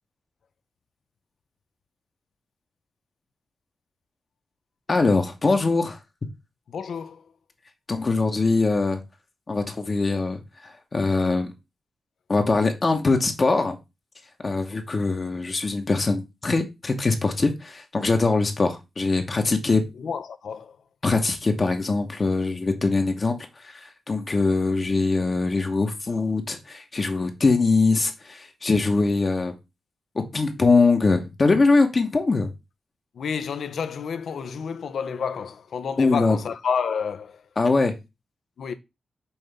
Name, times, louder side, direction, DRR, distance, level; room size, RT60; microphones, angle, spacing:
voice 1, 4.9-6.0 7.9-9.0 9.5-11.5 12.3-13.8 14.4-19.9 21.0-29.6 30.2-32.5 36.0-36.4 37.6-37.9, left 3 dB, 45° left, 0.8 m, -22 dB
voice 2, 6.7-7.2 20.0-20.8 33.2-37.4 38.6-38.7, left 6 dB, 75° left, 0.4 m, -30 dB
5.6 x 2.6 x 3.3 m
cardioid pair, 55°, 0 cm